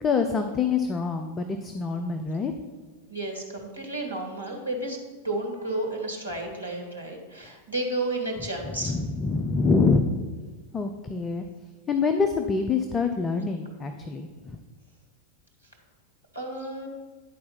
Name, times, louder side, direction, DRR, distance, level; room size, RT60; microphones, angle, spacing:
voice 1, 0.0-2.5 8.8-10.0 10.7-11.4 11.9-14.6, left 4 dB, 20° left, 6 dB, 0.6 m, -25 dB
voice 2, 3.1-5.0 5.2-8.9 16.3-16.9, right 2 dB, 85° right, -1 dB, 1.7 m, -32 dB
10.5 x 4.3 x 5.6 m, 1.4 s
figure-of-eight pair, 90°, 0 cm